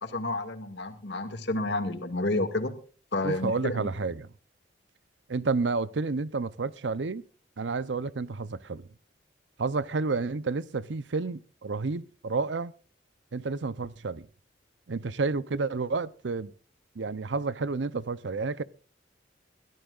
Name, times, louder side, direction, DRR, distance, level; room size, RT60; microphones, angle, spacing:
voice 1, 0.0-2.7 3.1-3.9, left 2 dB, 70° left, 2.1 m, -30 dB
voice 2, 3.2-4.3 5.3-7.2 7.6-8.8 9.6-12.7 13.3-14.3 14.9-16.5 17.0-18.6, right 4 dB, 85° right, 0.7 m, -30 dB
22.5 x 14.0 x 2.5 m
head